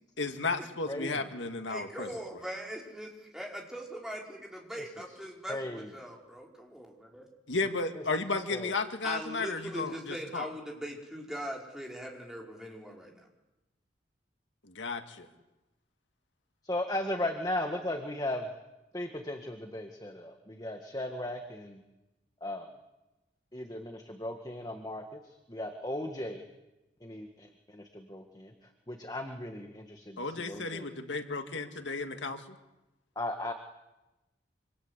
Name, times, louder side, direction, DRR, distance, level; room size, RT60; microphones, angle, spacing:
voice 1, 0.2-2.1 7.5-10.5 14.6-15.3 30.2-32.4, left 3 dB, 85° left, 7 dB, 2.2 m, -33 dB
voice 2, 0.9-1.2 5.5-5.9 8.0-8.1 8.5-8.7 16.6-18.5 18.9-21.8 22.4-22.7 23.5-25.2 25.5-26.4 27.0-28.5 28.9-30.8 33.2-33.5, left 1 dB, 20° left, 4 dB, 1.8 m, -36 dB
voice 3, 1.7-7.3 9.0-13.3, equal, 5° right, -1 dB, 4.9 m, -41 dB
27.5 x 26.5 x 8.3 m, 0.98 s
head